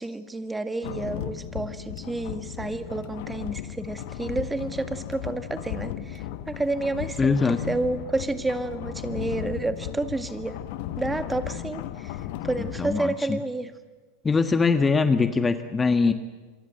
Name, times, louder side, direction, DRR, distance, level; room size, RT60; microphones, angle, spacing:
voice 1, 0.0-10.6 11.0-13.7, right 2 dB, 10° right, 9 dB, 2.0 m, -30 dB
sound 1, 0.8-13.0, left 12 dB, 65° left, 1.5 m, -35 dB
voice 2, 7.2-7.6 12.6-13.4 14.2-16.1, left 4 dB, 20° left, 8 dB, 1.4 m, -22 dB
27.5 x 23.5 x 7.9 m, 1.3 s
hypercardioid pair, 95°, 0 cm